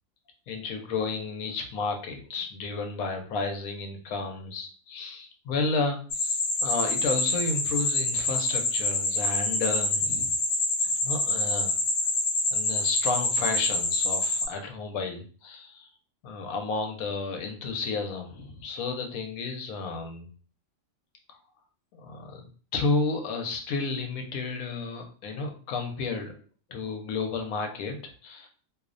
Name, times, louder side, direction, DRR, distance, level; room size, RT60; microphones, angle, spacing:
voice 1, 0.5-10.3 10.8-11.8 12.5-15.9 16.2-20.3 21.9-22.5 22.7-26.3 26.7-28.5, left 4 dB, 90° left, 4 dB, 1.0 m, -32 dB
sound 1, 6.1-14.5, left 2 dB, 65° left, 0.7 m, -26 dB
2.6 x 2.0 x 2.4 m, 0.40 s
omnidirectional pair, 1.4 m